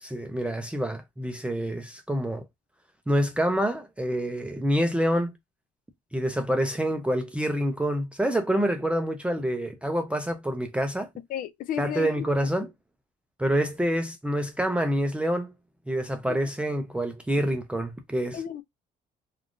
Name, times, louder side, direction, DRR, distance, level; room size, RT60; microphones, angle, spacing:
voice 1, 0.0-2.4 3.1-5.3 6.1-11.1 11.8-12.7 13.4-15.5 15.9-18.4, equal, 5° right, 0.5 m, -27 dB
voice 2, 11.3-12.5 16.3-16.4 18.3-18.6, left 10 dB, 55° left, 0.4 m, -33 dB
3.4 x 2.4 x 2.4 m
cardioid pair, 110°, 17 cm